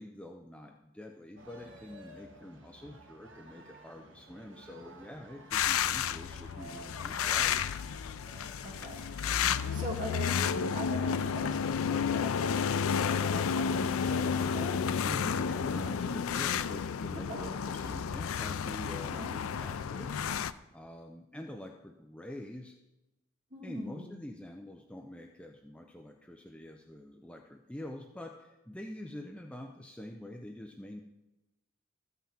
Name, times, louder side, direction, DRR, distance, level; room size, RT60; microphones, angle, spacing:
voice 1, 0.0-7.6 15.1-22.8 23.6-31.0, left 1 dB, 5° left, 3 dB, 0.5 m, -46 dB
sound 1, 1.4-12.0, right 1 dB, 65° right, 1.6 m, -53 dB
sound 2, 5.5-20.5, left 7 dB, 80° left, 0.4 m, -31 dB
voice 2, 7.1-7.5 8.6-9.0 9.7-14.8 17.1-17.6 19.0-19.4 23.5-24.1, equal, 35° right, -1 dB, 2.3 m, -42 dB
14.0 x 5.8 x 7.2 m, 1.0 s
head